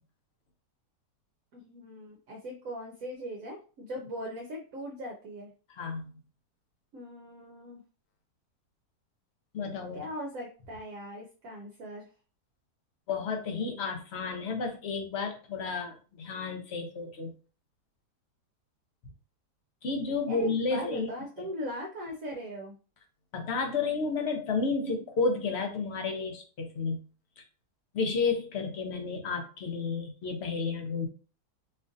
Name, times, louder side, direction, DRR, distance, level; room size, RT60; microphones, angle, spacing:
voice 1, 1.5-5.5 6.9-7.8 9.9-12.1 20.3-22.8, equal, 65° right, 0 dB, 1.0 m, -40 dB
voice 2, 5.8-6.1 9.5-10.0 13.1-17.3 19.8-21.1 21.4-21.5 23.3-27.0 27.4-27.5 27.9-31.1, left 4 dB, 60° left, 4 dB, 0.7 m, -31 dB
4.3 x 2.5 x 2.5 m, 0.37 s
omnidirectional pair, 1.8 m